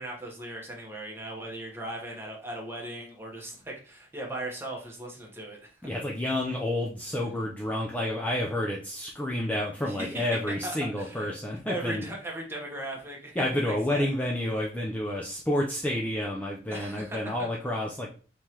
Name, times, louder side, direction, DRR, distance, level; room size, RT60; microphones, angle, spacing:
voice 1, 0.0-5.7 9.8-10.2 10.6-11.3 11.6-14.1 16.7-17.3, right 1 dB, 15° right, -1 dB, 1.1 m, -38 dB
voice 2, 5.8-12.0 13.4-18.1, left 1 dB, 10° left, -3 dB, 0.5 m, -30 dB
5.6 x 3.2 x 2.9 m, 0.38 s
head